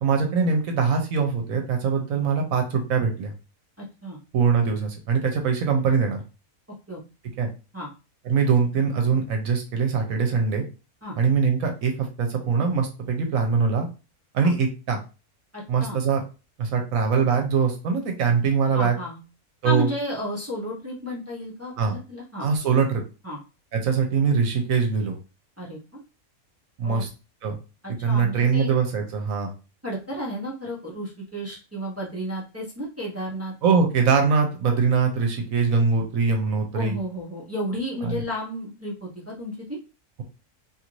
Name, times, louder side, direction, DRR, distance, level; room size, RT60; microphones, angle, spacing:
voice 1, 0.0-3.3 4.3-6.2 7.4-7.5 8.3-10.6 11.2-13.9 14.3-15.0 15.7-16.2 16.6-19.0 19.6-19.9 21.8-22.0 22.4-23.0 23.7-25.2 26.8-27.1 27.4-27.6 28.0-29.5 33.6-37.0 38.0-38.1, right 5 dB, 70° right, 3 dB, 1.0 m, -22 dB
voice 2, 3.8-4.2 6.9-7.0 7.7-7.9 11.0-11.2 14.4-14.5 15.5-16.0 18.7-19.2 19.6-22.5 23.2-23.4 25.6-26.0 26.8-27.1 27.8-28.7 29.8-33.5 36.7-39.8, equal, 25° right, -5 dB, 0.3 m, -32 dB
2.8 x 2.5 x 3.0 m, 0.31 s
omnidirectional pair, 1.6 m